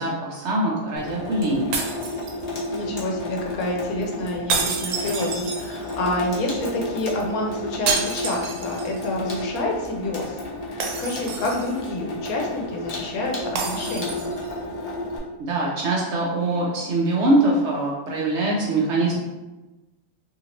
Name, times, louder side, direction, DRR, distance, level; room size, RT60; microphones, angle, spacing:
voice 1, 0.0-1.8 15.4-19.2, right 2 dB, 60° right, -3 dB, 0.8 m, -23 dB
Water tap faucet / Sink (filling or washing), 1.0-15.2, left 1 dB, 50° left, 0.4 m, -32 dB
sound 1, 1.7-2.8 4.5-6.1 7.9-9.1 9.4-9.5 10.8-11.9 13.6-14.5, right 4 dB, 90° right, 1.1 m, -29 dB
voice 2, 2.7-10.4 10.7-14.3, left 1 dB, 75° left, 0 dB, 1.1 m, -28 dB
2.8 x 2.8 x 2.8 m, 1.1 s
omnidirectional pair, 1.5 m